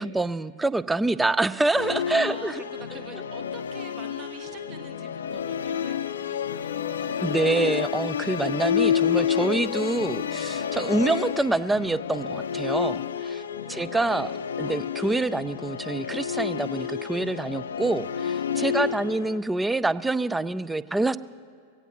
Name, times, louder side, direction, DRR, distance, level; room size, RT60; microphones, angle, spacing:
voice 1, 0.0-2.6 7.2-13.4 13.7-14.3 14.6-21.2, right 2 dB, 10° right, 18 dB, 0.4 m, -26 dB
Musical instrument, 1.8-19.4, left 8 dB, 65° left, 0.5 m, -29 dB
voice 2, 2.1-7.6 13.6-14.4 18.7-19.2, right 6 dB, 40° right, 8 dB, 1.3 m, -46 dB
23.0 x 17.0 x 2.9 m, 2.2 s
figure-of-eight pair, 90°, 0 cm